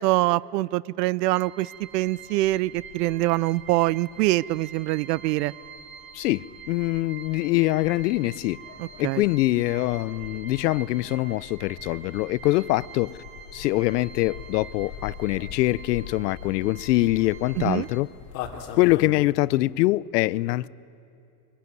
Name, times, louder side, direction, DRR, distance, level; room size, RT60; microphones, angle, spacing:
voice 1, 0.0-5.5 8.8-9.2 17.6-17.9, right 18 dB, 80° right, 0.6 m, -24 dB
sound 1, 1.3-18.0, right 7 dB, 60° right, 2.0 m, -46 dB
Pargue Ruis de Alida, 1.7-19.1, left 8 dB, 60° left, 3.0 m, -44 dB
voice 2, 6.1-8.6 9.0-13.2 13.5-18.1 18.8-20.7, left 18 dB, 85° left, 0.7 m, -24 dB
24.5 x 20.5 x 9.5 m
supercardioid pair, 175°, 47 cm